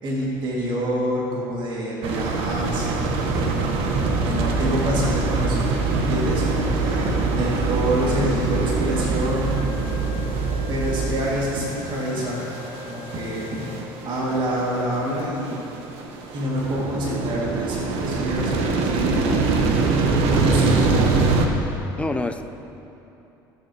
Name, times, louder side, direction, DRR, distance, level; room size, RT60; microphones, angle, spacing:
voice 1, 0.0-9.5 10.7-12.4 12.8-13.6 14.0-15.6 16.3-19.3 20.3-21.2, equal, 45° right, -4 dB, 2.4 m, -27 dB
sound 1, 2.0-21.5, right 3 dB, 65° right, 1.2 m, -24 dB
sound 2, 3.9-11.3, right 4 dB, 30° right, 0.7 m, -28 dB
Wind instrument woodwind instrument, 9.5-14.3, left 6 dB, 55° left, 1.5 m, -42 dB
voice 2, 20.9-21.6 22.0-22.4, left 2 dB, 10° left, 7 dB, 0.7 m, -29 dB
17.5 x 8.1 x 3.1 m, 2.9 s
hypercardioid pair, 70°, 11 cm